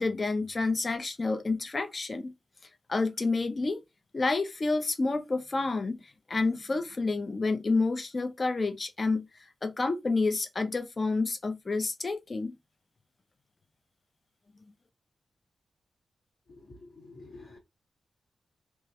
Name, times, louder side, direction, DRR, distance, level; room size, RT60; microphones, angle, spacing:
voice 1, 0.0-2.3 2.9-3.8 4.1-6.0 6.3-9.3 9.6-12.6, left 3 dB, 30° left, 0.3 m, -29 dB
voice 2, 16.7-17.6, left 2 dB, 55° left, 1.1 m, -49 dB
2.3 x 2.1 x 2.7 m
wide cardioid pair, 160°, 0 cm